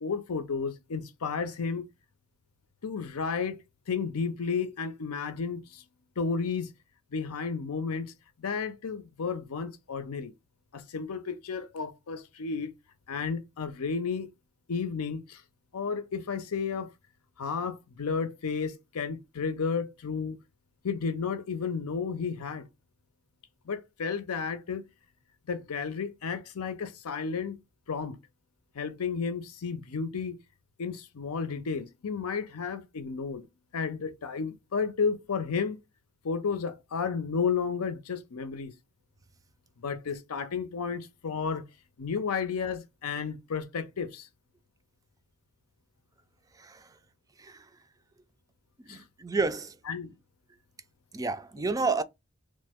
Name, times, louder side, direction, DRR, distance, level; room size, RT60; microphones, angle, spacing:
voice 1, 0.0-1.9 2.8-3.6 3.9-5.8 6.2-6.7 7.1-8.1 8.4-10.3 10.7-12.7 13.1-14.3 14.7-15.4 15.7-16.9 17.4-20.4 20.8-22.7 23.7-24.8 25.5-27.6 27.9-28.2 28.7-30.4 30.8-33.5 33.7-35.8 36.2-38.7 39.8-41.6 42.0-44.3 48.9-49.0 49.9-50.1, left 5 dB, 90° left, 0.6 m, -32 dB
voice 2, 48.9-49.7 51.1-52.0, right 4 dB, 15° right, 0.3 m, -30 dB
3.2 x 2.1 x 3.4 m
head